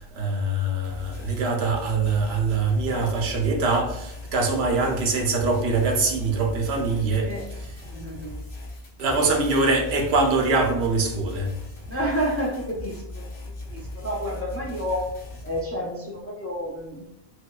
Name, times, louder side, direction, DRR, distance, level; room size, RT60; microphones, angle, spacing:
voice 1, 0.0-7.8 9.0-11.5, right 3 dB, 90° right, 0.9 m, -23 dB
sound 1, 0.8-15.6, left 1 dB, 85° left, 1.3 m, -38 dB
voice 2, 7.2-7.5 7.8-8.4 9.2-9.3 11.9-13.3 13.7-17.1, equal, 20° left, 0.4 m, -30 dB
4.5 x 2.2 x 2.3 m
omnidirectional pair, 1.0 m